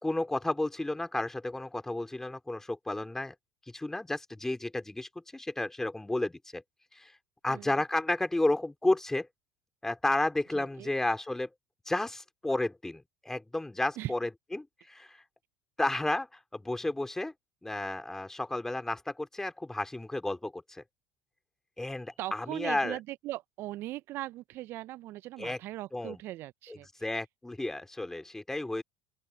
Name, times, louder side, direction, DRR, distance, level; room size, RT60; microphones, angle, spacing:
voice 1, 0.0-3.3 3.7-6.6 6.9-7.1 7.4-9.3 9.8-11.5 11.8-15.2 15.8-17.3 17.6-20.8 21.8-23.0 25.4-25.6 25.9-26.2 26.7-28.8, left 2 dB, 10° left, 3.4 m, -32 dB
voice 2, 10.5-10.9 14.0-14.1 22.2-26.9, right 16 dB, 55° right, 0.8 m, -39 dB
open air
hypercardioid pair, 70°, 5 cm